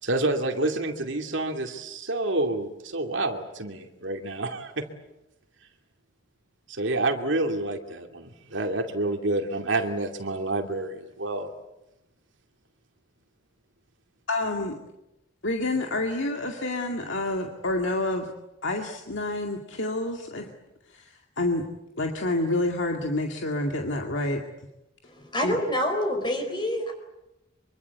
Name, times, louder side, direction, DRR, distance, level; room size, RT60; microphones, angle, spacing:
voice 1, 0.0-4.9 6.7-11.5, right 2 dB, 65° right, 3 dB, 2.6 m, -28 dB
voice 2, 14.3-14.8 15.4-18.3 18.6-20.5 20.9-21.6 22.0-24.4 25.4-25.6, left 2 dB, 70° left, 3 dB, 2.2 m, -28 dB
voice 3, 25.0-26.9, left 1 dB, 25° left, 4 dB, 4.7 m, -27 dB
25.0 x 24.5 x 8.3 m, 0.91 s
head